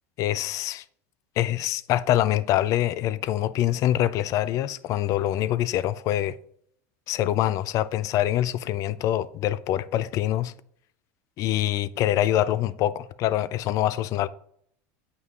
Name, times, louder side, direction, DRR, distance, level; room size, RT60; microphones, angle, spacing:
voice 1, 0.2-0.8 1.4-6.3 7.1-10.5 11.4-14.3, left 13 dB, 45° left, 0.3 m, -25 dB
8.0 x 5.4 x 2.4 m
supercardioid pair, 120°, 8 cm